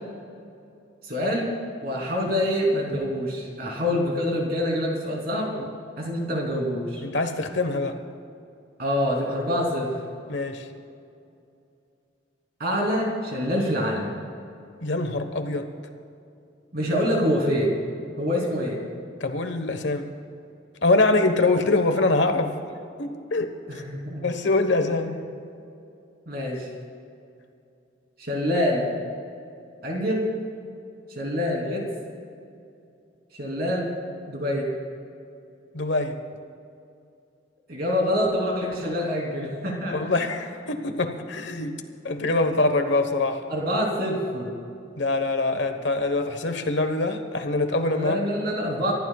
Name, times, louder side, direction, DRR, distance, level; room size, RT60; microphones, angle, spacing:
voice 1, 1.0-1.5 1.8-5.6 6.0-7.0 8.8-9.9 12.6-14.2 16.7-17.8 18.2-18.8 23.7-24.2 26.3-26.7 28.2-28.9 29.8-30.3 31.2-31.9 33.4-33.9 34.3-34.7 37.7-40.0 43.5-44.5 47.9-48.9, equal, 50° right, -1 dB, 3.5 m, -26 dB
voice 2, 7.0-8.0 10.3-10.7 14.8-15.7 19.2-20.1 20.8-22.5 23.0-23.5 24.2-25.2 35.7-36.2 39.9-41.8 42.0-43.4 45.0-48.2, left 2 dB, 65° left, 7 dB, 1.3 m, -24 dB
30.0 x 14.5 x 2.4 m, 2.6 s
head